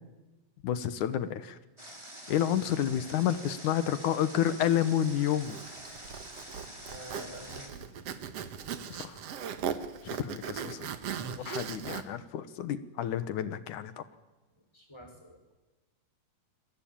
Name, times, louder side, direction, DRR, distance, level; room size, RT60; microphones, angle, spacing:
voice 1, 0.6-1.6 2.3-5.6 8.9-9.2 10.0-10.9 11.4-14.0, left 10 dB, 70° left, 12 dB, 2.5 m, -30 dB
Water, 1.8-7.7, right 1 dB, 10° right, 3.3 m, -46 dB
Zipper (clothing), 5.4-12.0, right 8 dB, 55° right, 2.1 m, -38 dB
voice 2, 6.9-7.8 11.1-11.8 14.7-15.4, equal, 5° left, 4 dB, 5.6 m, -48 dB
29.0 x 22.5 x 8.8 m, 1.1 s
omnidirectional pair, 3.8 m